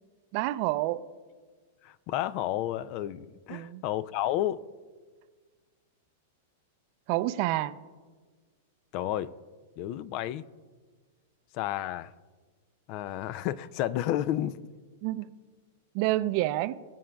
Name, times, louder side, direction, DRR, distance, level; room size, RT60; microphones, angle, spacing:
voice 1, 0.3-1.0 3.5-3.8 7.1-7.8 15.0-15.3 15.9-16.7, right 16 dB, 50° right, 0.4 m, -28 dB
voice 2, 1.8-4.6 8.9-9.3 9.8-10.4 11.5-12.1 12.9-14.6, left 12 dB, 45° left, 0.3 m, -31 dB
22.5 x 7.5 x 2.3 m
hypercardioid pair, 135°, 0 cm